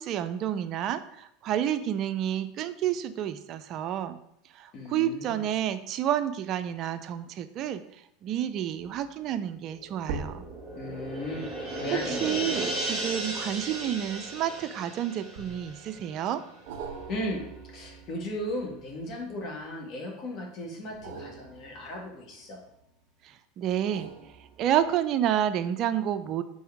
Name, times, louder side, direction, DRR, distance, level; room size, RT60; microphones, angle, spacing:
voice 1, 0.0-4.2 4.5-7.8 8.2-10.5 12.0-16.4 23.2-24.1 24.6-26.4, right 10 dB, 45° right, 11 dB, 0.5 m, -30 dB
voice 2, 4.7-5.4 10.7-12.4 17.1-22.6, left 1 dB, 45° left, -1 dB, 1.8 m, -36 dB
sound 1, 8.8-9.1 10.0-14.7 15.4-16.0 16.7-19.6 20.8-22.9 23.7-25.1 25.6-25.7, right 5 dB, 65° right, 1.4 m, -44 dB
sound 2, 9.7-16.7 17.0-17.1, right 1 dB, 10° right, 2.2 m, -36 dB
5.5 x 4.3 x 4.7 m, 0.74 s
hypercardioid pair, 105°, 0 cm